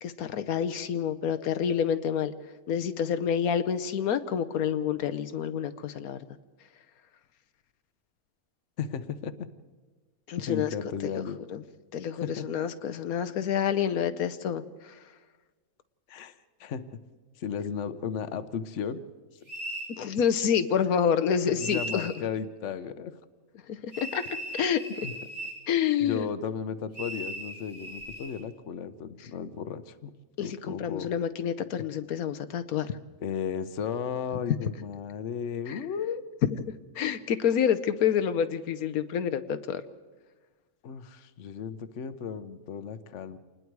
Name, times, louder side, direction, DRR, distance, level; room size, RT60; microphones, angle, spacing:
voice 1, 0.0-2.3 2.7-6.2 10.3-10.7 11.5-11.6 11.9-14.9 20.0-22.1 23.7-24.2 24.5-24.8 25.7-26.3 30.4-32.9 35.7-35.8 37.0-39.8, left 8 dB, 85° left, 11 dB, 1.3 m, -28 dB
voice 2, 8.8-9.4 10.5-11.4 12.2-12.5 16.1-16.3 16.6-17.0 17.4-19.0 21.5-23.1 25.0-25.1 26.0-30.1 30.4-31.1 33.2-36.2 40.8-43.4, left 7 dB, 60° left, 12 dB, 1.2 m, -34 dB
sound 1, 19.5-19.9 21.6-22.2 23.9-25.6 26.9-28.3, right 1 dB, 65° right, 7.2 m, -37 dB
27.5 x 20.0 x 4.7 m, 1.3 s
omnidirectional pair, 1.5 m